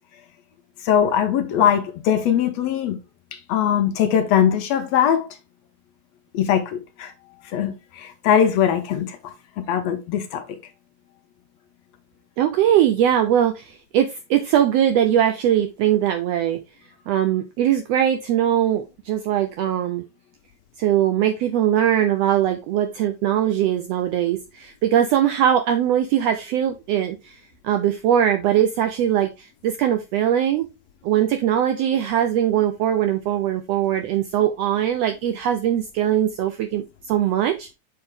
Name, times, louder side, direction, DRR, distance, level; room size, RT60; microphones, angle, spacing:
voice 1, 0.8-3.0 3.3-5.3 6.3-7.1 7.4-9.3 9.7-10.6, left 9 dB, 70° left, 1.7 m, -21 dB
voice 2, 12.4-16.6 17.1-20.0 20.8-30.7 31.0-37.7, right 10 dB, 90° right, 1.4 m, -21 dB
6.6 x 4.7 x 3.5 m
omnidirectional pair, 3.4 m